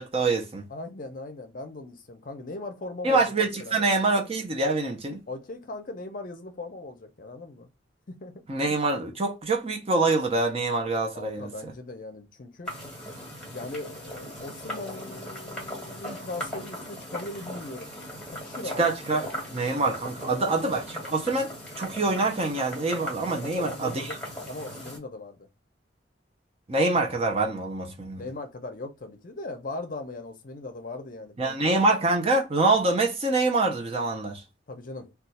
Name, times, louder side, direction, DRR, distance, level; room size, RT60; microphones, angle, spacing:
voice 1, 0.0-0.6 3.0-5.2 8.5-11.7 18.8-24.1 26.7-28.2 31.4-34.4, right 3 dB, 30° right, 0.6 m, -25 dB
voice 2, 0.7-3.2 3.6-3.7 5.3-7.7 8.1-8.3 11.1-12.7 13.5-17.9 18.3-18.8 20.1-20.6 23.4-24.2 24.5-25.5 28.2-31.7 34.7-35.1, left 2 dB, 45° left, 0.6 m, -39 dB
sound 1, 12.6-25.0, equal, 5° left, 1.3 m, -39 dB
2.4 x 2.3 x 4.0 m
head